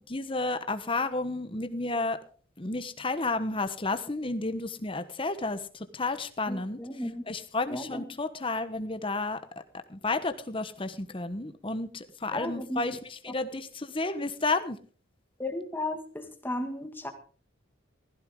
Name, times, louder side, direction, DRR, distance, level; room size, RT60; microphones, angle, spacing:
voice 1, 0.1-2.2 2.6-6.8 7.3-9.4 9.9-14.8, left 3 dB, 25° left, 1.1 m, -31 dB
voice 2, 6.5-7.3 7.7-8.1 12.3-12.8 13.3-13.4 15.4-17.1, left 1 dB, 10° left, 1.8 m, -35 dB
16.5 x 14.5 x 3.8 m
head